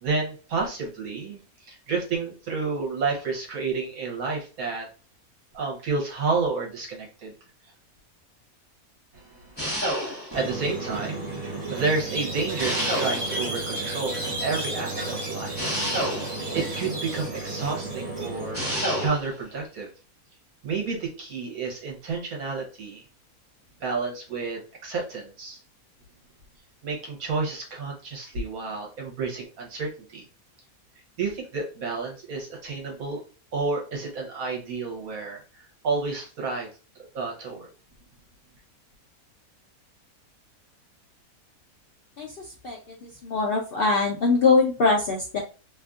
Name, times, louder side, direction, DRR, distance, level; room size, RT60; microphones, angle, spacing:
voice 1, 0.0-4.9 5.5-7.3 9.1-15.7 16.5-18.6 19.0-19.9 20.6-23.0 23.8-25.6 26.8-30.2 31.2-33.2 33.5-36.7 37.1-37.7, right 4 dB, 70° right, 0 dB, 1.3 m, -30 dB
sound 1, 9.6-10.5 12.6-13.5 15.5-16.6 18.5-19.3, equal, 5° left, 1.2 m, -29 dB
Squeak, 10.3-19.1, right 2 dB, 25° right, 0.7 m, -32 dB
voice 2, 42.6-45.4, left 4 dB, 80° left, -1 dB, 0.5 m, -23 dB
2.8 x 2.5 x 2.3 m, 0.35 s
omnidirectional pair, 1.6 m